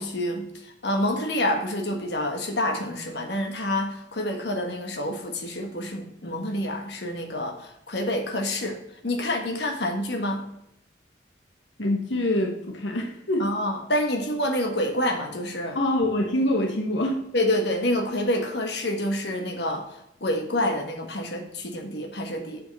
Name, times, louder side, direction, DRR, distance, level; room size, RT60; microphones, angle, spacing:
voice 1, 0.0-8.8 9.0-10.4 13.4-15.8 17.3-19.8 20.2-22.6, left 1 dB, 60° left, 4 dB, 1.6 m, -27 dB
voice 2, 11.8-13.5 15.7-17.2, left 1 dB, 80° left, 1 dB, 1.4 m, -25 dB
8.0 x 6.8 x 5.5 m, 0.81 s
head